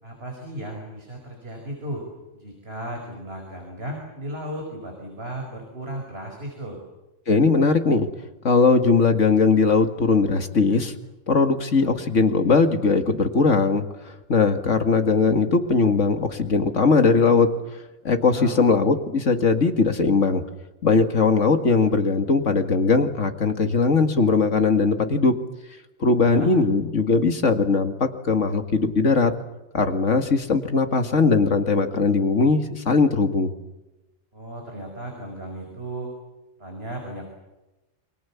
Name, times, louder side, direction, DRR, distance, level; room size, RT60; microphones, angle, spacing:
voice 1, 0.0-2.1 2.3-6.8 18.2-18.7 26.2-26.5 34.3-36.1 36.6-37.3, right 1 dB, 50° right, 2 dB, 5.5 m, -35 dB
voice 2, 7.3-8.1 8.4-10.9 11.3-17.5 18.0-20.4 20.8-25.4 26.0-29.3 29.7-33.5, left 4 dB, 75° left, 6 dB, 2.4 m, -20 dB
28.5 x 24.5 x 7.2 m, 1.0 s
omnidirectional pair, 1.3 m